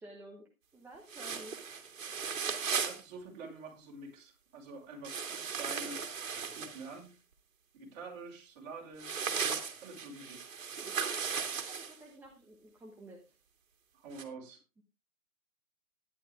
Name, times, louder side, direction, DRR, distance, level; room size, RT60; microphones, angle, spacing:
voice 1, 0.0-1.6 11.5-13.4 14.8-14.9, right 1 dB, 5° right, -2 dB, 1.1 m, -52 dB
sound 1, 1.1-3.0 5.0-6.9 9.0-12.0 14.1-14.2, right 6 dB, 65° right, 2.5 m, -36 dB
voice 2, 2.8-6.3 6.6-7.1 7.7-10.4 13.9-14.6, right 3 dB, 30° right, -2 dB, 5.7 m, -47 dB
11.5 x 11.0 x 3.5 m, 0.28 s
hypercardioid pair, 140°, 42 cm